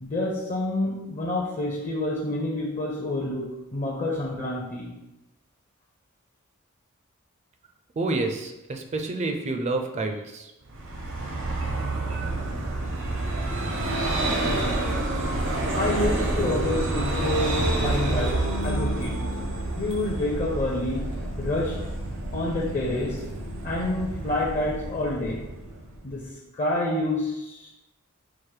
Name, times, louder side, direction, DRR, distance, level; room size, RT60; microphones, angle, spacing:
voice 1, 0.0-4.9 15.8-19.2 19.8-21.1 21.4-21.8 22.3-23.2 23.6-25.5 26.0-27.7, left 1 dB, 35° left, -2 dB, 0.5 m, -28 dB
voice 2, 8.0-10.5, right 2 dB, 30° right, 4 dB, 0.4 m, -28 dB
Vehicle, 10.7-26.2, right 2 dB, 60° right, 0.7 m, -28 dB
4.8 x 2.1 x 4.5 m, 0.96 s
head